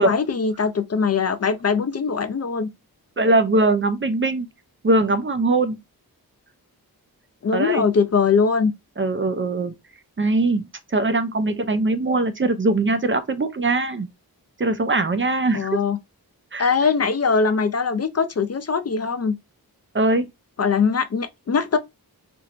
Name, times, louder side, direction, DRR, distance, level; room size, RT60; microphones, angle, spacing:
voice 1, 0.0-2.7 7.4-8.7 15.5-16.0 16.6-19.4 20.6-21.8, left 5 dB, 45° left, 0.4 m, -21 dB
voice 2, 3.2-4.5 4.8-5.8 7.5-7.9 9.0-9.7 10.2-14.1 14.6-15.8 16.5-16.7 19.9-20.3, right 2 dB, 35° right, 0.4 m, -21 dB
4.3 x 2.1 x 2.4 m
wide cardioid pair, 95°, 38 cm